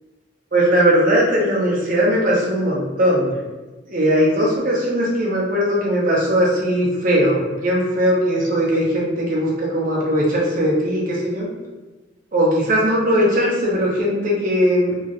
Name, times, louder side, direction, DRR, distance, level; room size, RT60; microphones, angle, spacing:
voice 1, 0.5-3.4 3.9-11.5 12.3-14.9, equal, 50° right, -5 dB, 0.8 m, -19 dB
3.0 x 2.5 x 2.6 m, 1.2 s
head